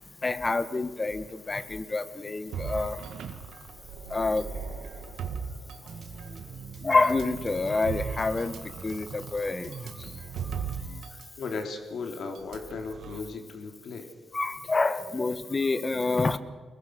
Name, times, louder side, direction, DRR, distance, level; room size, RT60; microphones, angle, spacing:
voice 1, 0.2-3.0 4.1-4.5 6.8-8.5 8.8-9.7 14.3-16.4, left 3 dB, 30° left, 12 dB, 1.6 m, -27 dB
sound 1, 2.5-6.4 7.0-11.3 11.5-11.7 12.3-13.2, right 6 dB, 75° right, 2.0 m, -38 dB
sound 2, 5.9-11.0, right 6 dB, 55° right, 1.5 m, -43 dB
voice 2, 11.4-14.1, left 4 dB, 65° left, 5 dB, 3.4 m, -36 dB
24.0 x 20.5 x 6.5 m, 1.4 s
cardioid pair, 75°, 0 cm